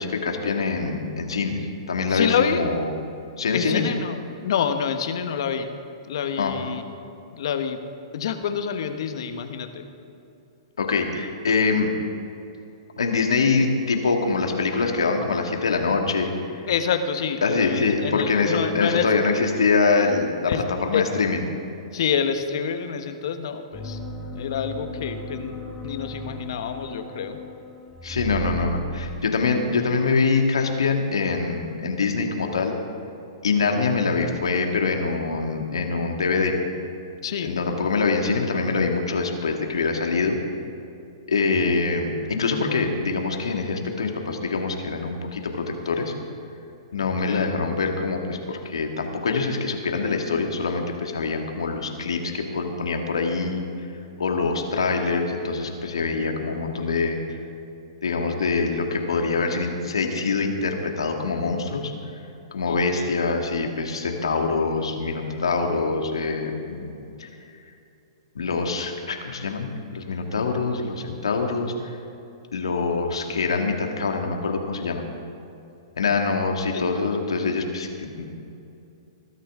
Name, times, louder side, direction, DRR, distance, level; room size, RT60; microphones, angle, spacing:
voice 1, 0.0-1.6 1.9-2.9 3.4-3.8 6.4-6.5 10.8-11.9 13.0-16.3 16.6-16.7 17.4-20.5 20.8-21.4 28.0-32.7 33.4-36.6 37.4-40.4 41.3-46.1 46.9-53.7 54.2-57.2 58.0-61.9 62.5-67.3 68.4-71.7 72.5-75.1 76.0-78.3, left 4 dB, 80° left, 3 dB, 1.9 m, -24 dB
voice 2, 2.1-2.6 3.5-4.2 4.4-5.8 6.1-6.9 7.3-7.8 8.1-9.8 16.7-19.1 20.5-20.6 20.9-21.1 21.9-24.0 24.3-27.4 37.2-37.5 47.0-47.6 62.6-63.2 73.3-73.4 76.7-76.8, left 7 dB, 65° left, 8 dB, 1.1 m, -27 dB
sound 1, 23.7-29.1, equal, 10° left, 2.6 m, -35 dB
20.5 x 13.0 x 3.7 m, 2.7 s
hypercardioid pair, 115°, 3 cm